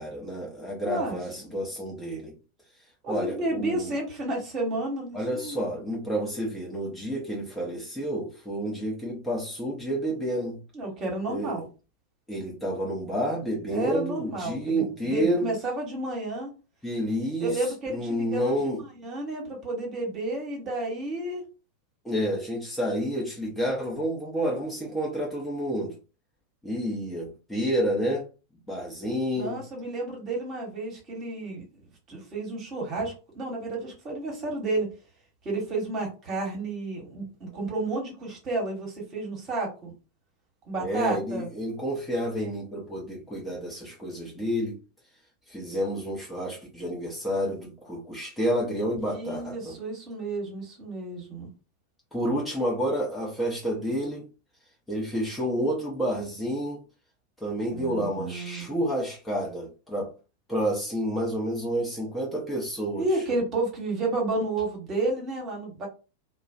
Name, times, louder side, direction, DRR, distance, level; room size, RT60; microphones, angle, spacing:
voice 1, 0.0-2.4 3.1-3.9 5.1-10.6 11.3-11.6 12.3-15.5 16.8-17.6 17.9-18.8 22.0-26.0 26.6-28.3 28.7-29.6 40.8-44.8 45.5-49.8 52.1-54.3 54.9-56.8 57.4-60.1 60.5-63.0, equal, 5° left, 0.7 m, -29 dB
voice 2, 0.8-1.2 1.5-1.6 3.0-5.6 10.7-11.7 13.7-16.5 17.4-18.6 19.0-21.4 29.3-31.8 32.1-34.9 35.4-39.9 40.7-41.5 49.0-51.5 57.7-58.8 62.9-65.9, right 2 dB, 30° right, 1.2 m, -31 dB
2.4 x 2.1 x 2.5 m
figure-of-eight pair, 90°, 0 cm